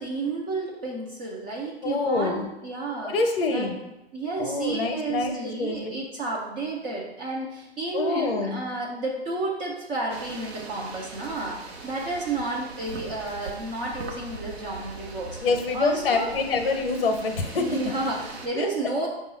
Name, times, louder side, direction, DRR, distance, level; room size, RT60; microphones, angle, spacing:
voice 1, 0.0-3.1 3.5-3.7 4.1-15.4 15.7-16.3 17.6-19.1, right 3 dB, 15° right, -3 dB, 0.4 m, -31 dB
voice 2, 1.8-2.5 3.0-3.8 4.4-5.9 7.9-8.6 15.4-17.8 18.5-18.7, left 4 dB, 60° left, 6 dB, 0.8 m, -26 dB
sound 1, 10.1-18.5, right 3 dB, 75° right, 0.9 m, -41 dB
5.1 x 2.4 x 4.1 m, 0.94 s
figure-of-eight pair, 120°, 32 cm